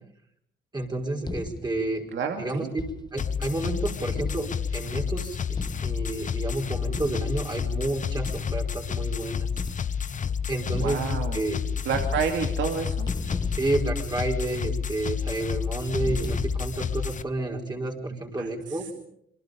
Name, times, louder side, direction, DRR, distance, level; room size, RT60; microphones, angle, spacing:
voice 1, 0.7-2.0 2.4-2.7 3.1-9.5 10.5-11.0 11.3-11.6 13.5-18.9, right 2 dB, 20° right, 1 dB, 5.0 m, -30 dB
sound 1, 1.2-1.9 2.8-3.4 4.2-5.0 5.6-6.3 6.9-7.6 8.2-9.0 9.6-10.2 10.7-11.5 11.8-12.7 13.1-14.5 16.0-17.0, left 2 dB, 20° left, 1.7 m, -36 dB
voice 2, 2.1-2.7 10.8-11.4 11.8-13.1 18.1-18.8, right 6 dB, 70° right, 4 dB, 2.6 m, -30 dB
sound 2, 3.2-17.2, left 7 dB, 40° left, 0.9 m, -30 dB
28.0 x 23.0 x 5.3 m, 0.71 s
cardioid pair, 90°, 20 cm